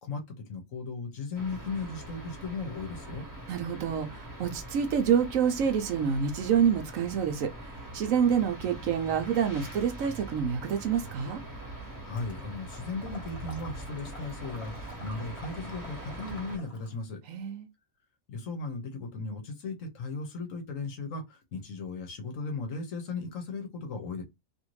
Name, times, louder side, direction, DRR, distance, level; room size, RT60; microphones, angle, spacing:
voice 1, 0.0-3.3 12.0-17.2 18.3-24.2, left 3 dB, 65° left, 1.1 m, -37 dB
sound 1, 1.3-16.6, right 1 dB, 15° right, 0.9 m, -43 dB
voice 2, 3.5-11.4 17.3-17.7, right 7 dB, 70° right, 0.9 m, -27 dB
Water / Liquid, 12.2-17.0, equal, 25° left, 1.2 m, -50 dB
2.7 x 2.6 x 3.0 m
omnidirectional pair, 1.5 m